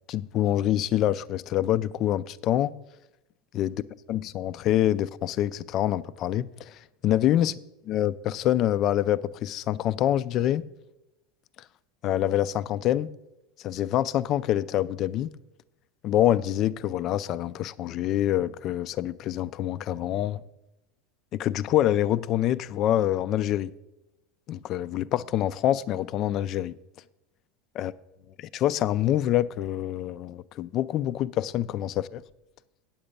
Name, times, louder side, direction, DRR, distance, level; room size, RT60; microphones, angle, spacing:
voice 1, 0.1-2.7 3.5-3.8 4.1-7.5 7.9-10.6 12.0-13.1 13.6-15.3 16.0-20.4 21.3-23.7 24.5-26.7 27.8-27.9 28.4-32.2, left 12 dB, 50° left, 0.4 m, -26 dB
8.8 x 7.8 x 5.2 m
hypercardioid pair, 95°, 0 cm